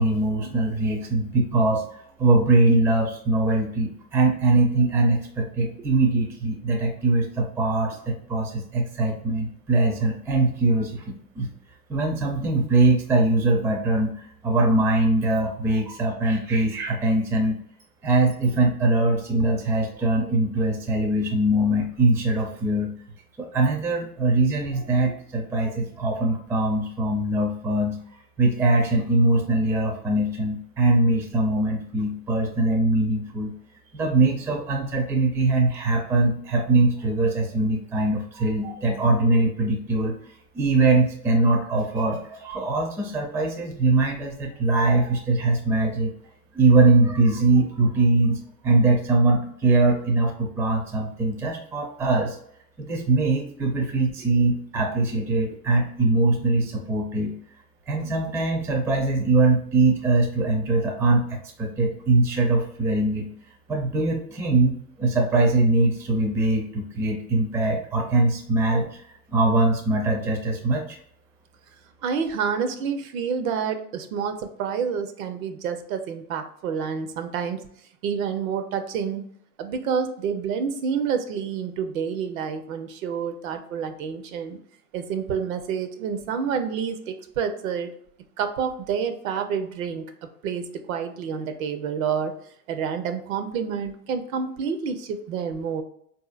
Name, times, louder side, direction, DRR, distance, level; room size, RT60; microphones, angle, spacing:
voice 1, 0.0-11.5 11.9-17.5 18.0-22.9 23.4-28.0 28.4-33.5 33.9-40.2 40.5-46.1 46.5-52.4 52.8-57.3 57.9-63.3 63.7-71.0, right 2 dB, 5° right, 2 dB, 0.4 m, -22 dB
voice 2, 72.0-77.6 78.0-79.2 79.6-84.6 84.9-87.9 88.4-90.1 90.4-92.3 92.7-95.8, right 6 dB, 65° right, 8 dB, 0.7 m, -28 dB
4.0 x 2.7 x 2.4 m, 0.67 s
hypercardioid pair, 105°, 45 cm